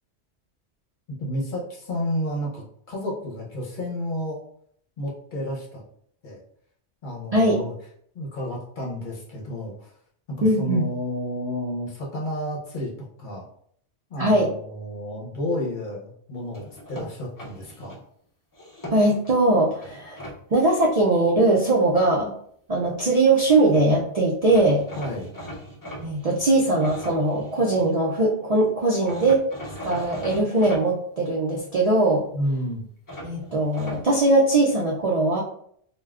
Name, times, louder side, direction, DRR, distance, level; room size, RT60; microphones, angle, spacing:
voice 1, 1.2-4.4 5.0-5.8 6.2-6.4 7.0-7.7 8.1-9.9 10.3-13.5 14.1-18.1 25.0-25.3 32.3-32.8, left 1 dB, 50° left, -3 dB, 0.8 m, -31 dB
voice 2, 7.3-7.6 10.4-10.9 14.2-14.5 18.9-20.2 20.5-22.3 22.7-24.8 26.0-29.4 29.8-32.2 33.2-35.4, right 2 dB, 55° right, -3 dB, 0.4 m, -20 dB
sound 1, 16.5-18.0 18.5-19.3 19.8-20.4 23.5-23.6 23.7-23.9 24.5-27.9 29.0-30.8 33.1-34.0, equal, 25° left, 0.5 m, -39 dB
3.4 x 2.3 x 2.3 m, 0.64 s
omnidirectional pair, 1.2 m